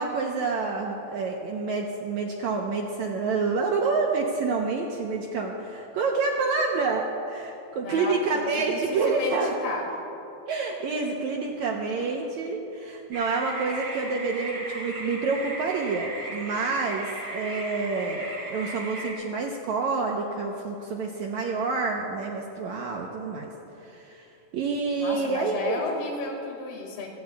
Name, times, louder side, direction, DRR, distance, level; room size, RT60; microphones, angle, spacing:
voice 1, 0.0-9.5 10.5-23.5 23.9-24.3 24.5-25.8, right 4 dB, 70° right, 0 dB, 1.8 m, -28 dB
voice 2, 7.8-9.9 25.0-27.1, left 3 dB, 85° left, 0 dB, 4.1 m, -33 dB
sound 1, 13.1-19.1, right 1 dB, 20° right, 1.8 m, -36 dB
25.5 x 16.5 x 2.4 m, 2.8 s
omnidirectional pair, 4.3 m